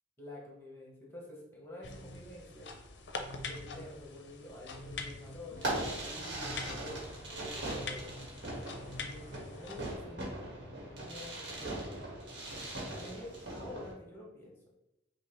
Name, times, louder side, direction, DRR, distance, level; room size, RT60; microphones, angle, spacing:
voice 1, 0.2-2.7 3.4-11.8 13.0-14.6, left 1 dB, 15° left, -3 dB, 1.1 m, -49 dB
sound 1, 1.8-9.9, left 3 dB, 65° left, 0.5 m, -44 dB
Fireworks, 5.5-13.9, right 1 dB, 65° right, 1.4 m, -40 dB
5.4 x 2.4 x 3.1 m, 0.92 s
head